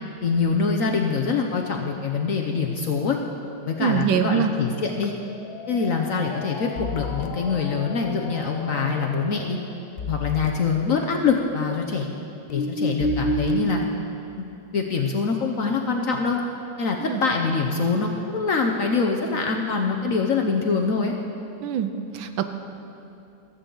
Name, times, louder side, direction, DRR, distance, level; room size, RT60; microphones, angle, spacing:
voice 1, 0.2-3.2 3.7-5.1 5.7-9.6 10.1-12.1 12.5-13.8 14.3-16.4 16.8-21.1, left 5 dB, 60° left, 2 dB, 0.9 m, -24 dB
voice 2, 3.8-4.5 17.0-17.2 21.6-22.4, right 8 dB, 80° right, 9 dB, 1.4 m, -24 dB
sound 1, 5.0-9.6 10.0-10.5 11.0-11.1 12.5-13.8, equal, 85° left, 0.5 m, -30 dB
15.0 x 13.0 x 3.9 m, 2.7 s
omnidirectional pair, 2.1 m